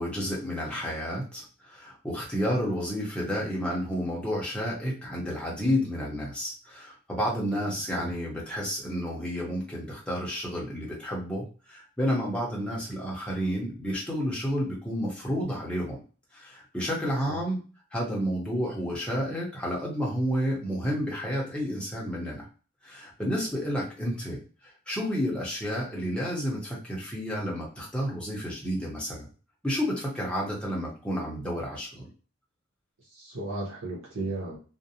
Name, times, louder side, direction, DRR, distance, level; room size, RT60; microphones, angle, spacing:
voice 1, 0.0-16.0 16.3-17.6 17.9-22.4 22.8-24.4 24.9-29.3 29.6-32.1, equal, 5° left, -4 dB, 0.7 m, -30 dB
voice 2, 7.5-8.1 17.3-17.4 33.0-34.6, right 2 dB, 75° right, -5 dB, 0.9 m, -36 dB
2.5 x 2.1 x 2.7 m, 0.37 s
head